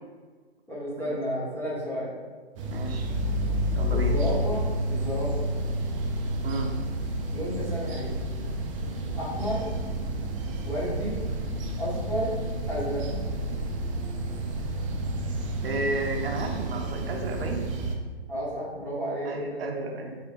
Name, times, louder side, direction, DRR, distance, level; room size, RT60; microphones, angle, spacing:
voice 1, 0.7-2.1 3.9-5.5 7.3-8.2 9.1-9.6 10.6-11.2 11.8-12.3 12.7-13.0 18.3-19.6, equal, 5° left, -9 dB, 1.2 m, -32 dB
sound 1, 2.6-18.0, right 1 dB, 30° right, 0.5 m, -30 dB
voice 2, 2.7-3.1 3.8-4.2 6.4-6.7 15.6-17.7 19.2-20.1, right 2 dB, 60° right, 2 dB, 0.7 m, -32 dB
4.9 x 3.8 x 2.5 m, 1.5 s
hypercardioid pair, 130°, 33 cm